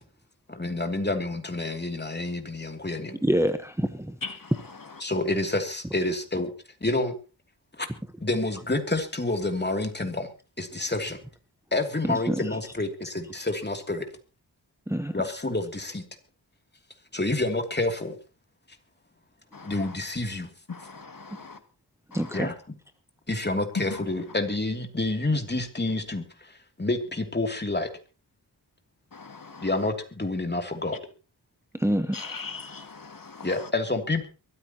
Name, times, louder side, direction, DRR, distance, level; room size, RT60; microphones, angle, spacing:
voice 1, 0.5-3.2 5.0-6.5 6.8-7.1 7.8-7.9 8.2-10.3 10.6-11.2 11.7-14.1 15.1-16.0 17.1-18.2 19.6-20.5 22.3-22.5 23.3-27.9 29.6-31.0 33.4-34.3, left 2 dB, 25° left, 2.9 m, -28 dB
voice 2, 3.2-4.1 12.1-12.5 14.9-15.1 22.1-22.5 31.7-32.4, equal, 5° right, 1.1 m, -26 dB
voice 3, 20.7-21.6 29.1-29.7 32.1-33.5, left 4 dB, 55° left, 2.0 m, -40 dB
23.5 x 13.5 x 3.0 m
wide cardioid pair, 75°, 41 cm